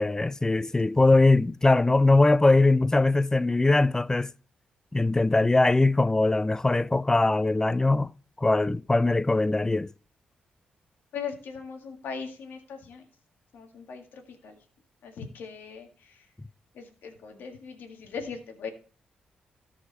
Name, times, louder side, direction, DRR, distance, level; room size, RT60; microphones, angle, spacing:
voice 1, 0.0-4.3 4.9-8.1 8.4-9.9, left 2 dB, 15° left, 0.4 m, -21 dB
voice 2, 11.1-13.0 13.5-14.6 15.0-16.2 16.7-18.7, left 6 dB, 80° left, 1.9 m, -39 dB
14.0 x 5.0 x 4.2 m
supercardioid pair, 55°, 3 cm